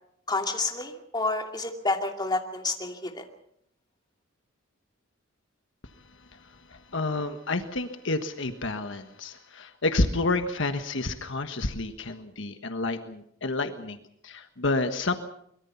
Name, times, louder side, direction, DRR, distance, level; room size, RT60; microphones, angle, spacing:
voice 1, 0.3-3.3, left 3 dB, 20° left, 3 dB, 2.6 m, -29 dB
voice 2, 6.7-15.1, left 2 dB, 70° left, 8 dB, 1.5 m, -29 dB
24.0 x 22.0 x 5.8 m, 0.70 s
head